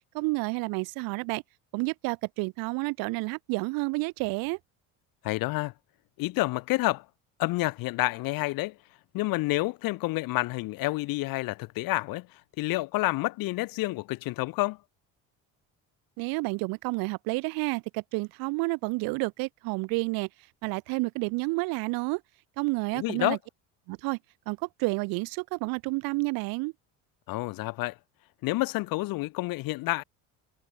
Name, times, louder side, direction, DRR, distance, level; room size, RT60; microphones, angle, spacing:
voice 1, 0.1-1.4 1.7-4.6 16.2-20.3 20.6-22.2 22.6-23.4 23.9-24.2 24.5-26.7, right 27 dB, 80° right, 5.9 m, -30 dB
voice 2, 5.2-5.7 6.2-7.0 7.4-8.7 9.1-12.3 12.6-14.8 22.9-23.4 27.3-28.0 28.4-30.0, left 21 dB, 75° left, 4.6 m, -29 dB
cardioid pair, 115°, 35 cm